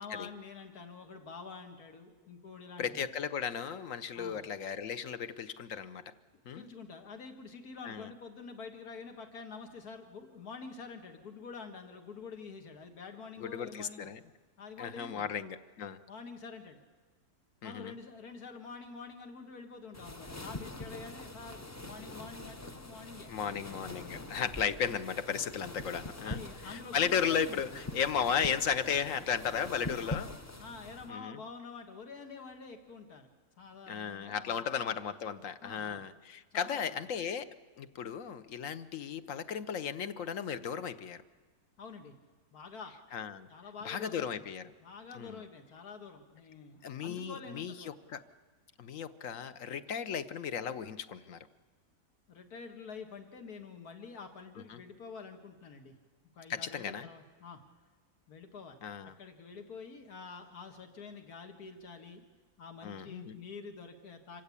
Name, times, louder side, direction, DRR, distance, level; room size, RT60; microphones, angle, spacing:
voice 1, 0.0-3.1 4.1-4.4 6.6-14.1 14.6-15.3 16.1-16.8 17.6-23.7 24.0-24.2 26.2-27.6 30.0-30.2 30.6-33.3 33.6-34.7 35.6-36.0 36.5-37.0 41.8-42.1 42.5-43.0 43.5-44.5 44.8-48.0 52.3-55.9 56.4-57.6 58.3-58.8 59.2-62.2 62.6-64.4, left 5 dB, 80° left, 5 dB, 2.1 m, -47 dB
voice 2, 2.8-6.0 6.5-6.6 7.8-8.1 13.4-14.2 14.8-16.0 17.6-17.9 23.3-26.4 26.7-30.3 31.1-31.4 33.9-37.5 37.8-41.2 43.1-43.5 43.8-44.7 45.1-45.4 46.8-48.2 48.8-51.4 54.7-54.8 56.5-57.1 58.8-59.1 62.8-63.3, left 7 dB, 60° left, 12 dB, 1.3 m, -35 dB
sound 1, 19.9-31.1, left 1 dB, 20° left, 0.4 m, -44 dB
27.0 x 15.5 x 8.5 m, 1.4 s
omnidirectional pair, 1.6 m